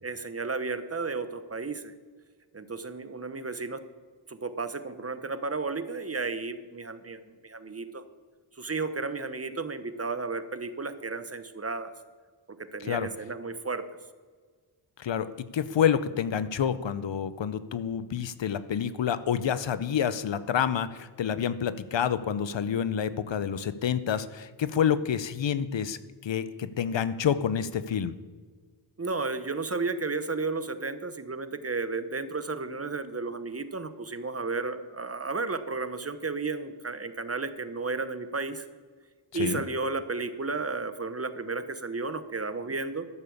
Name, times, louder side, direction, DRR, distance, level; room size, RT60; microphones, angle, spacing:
voice 1, 0.0-1.9 2.5-3.8 4.3-8.0 8.6-11.9 12.6-13.8 29.0-38.7 39.3-43.1, right 3 dB, 30° right, 11 dB, 1.0 m, -33 dB
voice 2, 15.5-28.1 39.3-39.6, left 8 dB, 65° left, 14 dB, 0.8 m, -28 dB
12.5 x 6.8 x 7.0 m, 1.5 s
cardioid pair, 60°, 48 cm